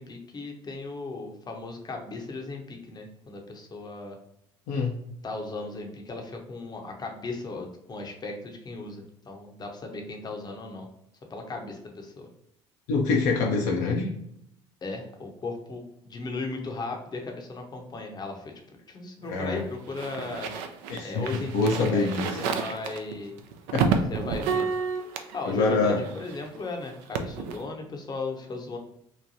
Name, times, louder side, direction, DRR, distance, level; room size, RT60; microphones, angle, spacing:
voice 1, 0.0-4.2 5.2-10.9 11.3-12.3 14.8-18.5 18.9-20.5 21.0-23.3 24.1-24.7 25.3-28.8, left 3 dB, 30° left, 3 dB, 0.7 m, -36 dB
voice 2, 12.9-14.1 19.3-19.6 20.9-22.3 23.7-23.9 25.5-26.0, left 3 dB, 65° left, 0 dB, 0.5 m, -25 dB
sound 1, 19.2-26.6 26.8-27.6, right 6 dB, 70° right, 0.4 m, -31 dB
2.9 x 2.2 x 2.6 m, 0.78 s
hypercardioid pair, 60°, 14 cm